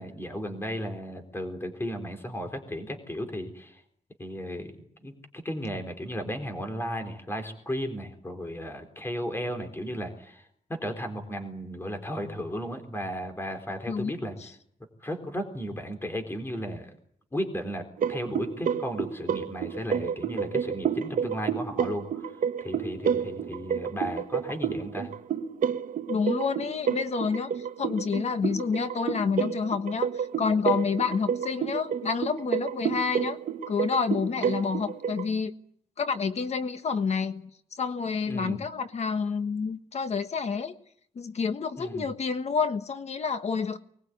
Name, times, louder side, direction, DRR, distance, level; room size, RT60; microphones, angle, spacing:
voice 1, 0.0-3.8 4.2-4.8 5.0-14.4 15.0-16.9 17.3-25.1 38.3-38.6 41.8-42.1, equal, 15° left, 6 dB, 3.9 m, -35 dB
sound 1, 18.0-35.3, right 7 dB, 70° right, 1.0 m, -30 dB
voice 2, 26.1-33.4 33.7-35.5 36.0-37.5 37.8-40.7 41.1-43.8, left 5 dB, 50° left, 9 dB, 1.4 m, -29 dB
24.5 x 20.5 x 9.4 m, 0.68 s
wide cardioid pair, 155°, 14 cm